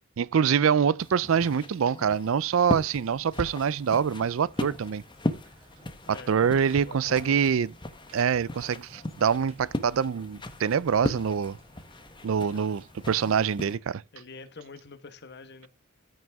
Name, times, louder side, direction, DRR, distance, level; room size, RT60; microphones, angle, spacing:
voice 1, 0.2-5.0 6.1-7.7 8.1-11.6 12.2-14.0, right 7 dB, 70° right, 0.4 m, -25 dB
sound 1, 1.0-13.8, left 1 dB, 20° left, 1.1 m, -37 dB
sound 2, 3.0-13.5, right 1 dB, 30° right, 2.9 m, -57 dB
voice 2, 6.0-6.4 6.8-7.4 12.5-12.8 14.1-15.7, left 3 dB, 55° left, 1.3 m, -46 dB
14.0 x 6.2 x 3.5 m
head